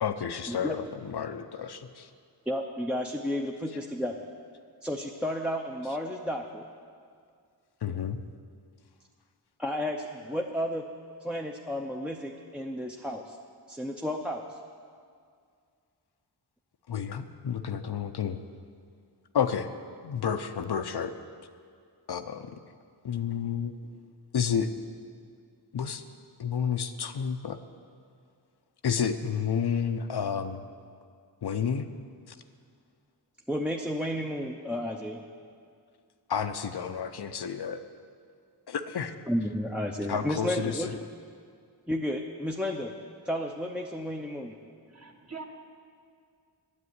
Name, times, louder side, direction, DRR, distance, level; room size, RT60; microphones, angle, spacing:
voice 1, 0.0-2.1 7.8-8.2 16.9-18.4 19.3-19.7 20.0-21.1 22.1-22.5 23.0-23.7 24.3-24.7 25.7-26.0 26.4-27.6 28.8-30.6 31.4-31.9 32.3-32.4 36.3-37.8 38.7-39.1 40.1-41.0, left 7 dB, 65° left, 8 dB, 0.7 m, -30 dB
voice 2, 2.5-4.2 4.8-6.6 9.6-10.9 11.2-13.4 13.7-14.6 33.5-35.2 39.3-40.9 41.9-42.9 43.2-44.5, equal, ahead, 1 dB, 0.6 m, -32 dB
voice 3, 44.7-45.4, right 4 dB, 35° right, 2 dB, 1.5 m, -44 dB
9.7 x 7.6 x 9.5 m, 2.2 s
wide cardioid pair, 70°, 42 cm